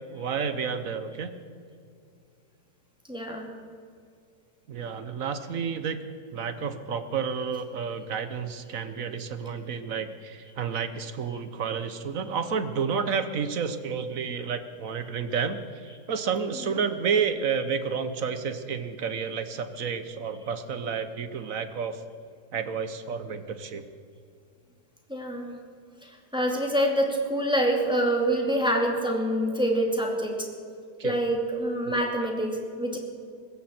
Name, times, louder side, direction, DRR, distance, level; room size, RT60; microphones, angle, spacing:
voice 1, 0.1-1.4 4.7-22.0 22.5-23.8 31.0-31.2 31.9-32.0, right 6 dB, 60° right, 10 dB, 1.3 m, -30 dB
voice 2, 3.1-3.5 16.7-16.8 25.1-25.5 26.0-30.5 31.0-33.0, right 1 dB, 5° right, 0 dB, 2.3 m, -26 dB
20.0 x 16.0 x 4.4 m, 2.4 s
omnidirectional pair, 1.7 m